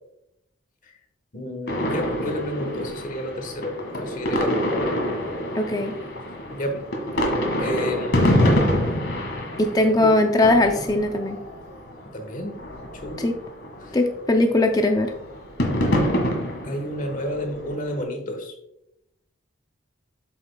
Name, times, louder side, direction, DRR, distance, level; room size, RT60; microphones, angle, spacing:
voice 1, 1.3-3.7 4.0-4.7 6.5-6.8 7.6-8.4 10.0-10.1 12.1-12.6 13.0-13.3 13.8-14.0 16.6-18.5, equal, 40° left, 4 dB, 1.2 m, -30 dB
sound 1, 1.7-12.0 12.4-14.5 14.8-18.0, left 1 dB, 60° left, 1.7 m, -26 dB
voice 2, 5.5-6.0 9.6-11.4 13.2-13.3 13.9-15.1, left 2 dB, 20° left, 5 dB, 0.4 m, -20 dB
8.0 x 7.0 x 2.2 m, 0.85 s
head